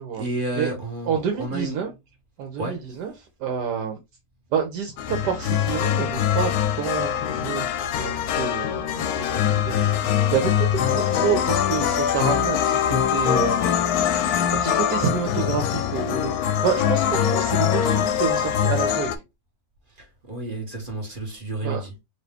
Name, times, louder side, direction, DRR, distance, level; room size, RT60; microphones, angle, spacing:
voice 1, 0.1-1.9 2.6-2.9 19.9-21.9, right 2 dB, 35° right, 1.2 m, -31 dB
voice 2, 1.1-1.9 2.4-3.1 3.4-4.0 4.5-6.5 6.8-9.8 10.3-13.7 14.5-19.1 21.6-21.8, right 7 dB, 80° right, 1.3 m, -28 dB
sound 1, 5.0-19.2, left 9 dB, 70° left, 1.0 m, -23 dB
4.1 x 2.7 x 3.3 m
omnidirectional pair, 1.8 m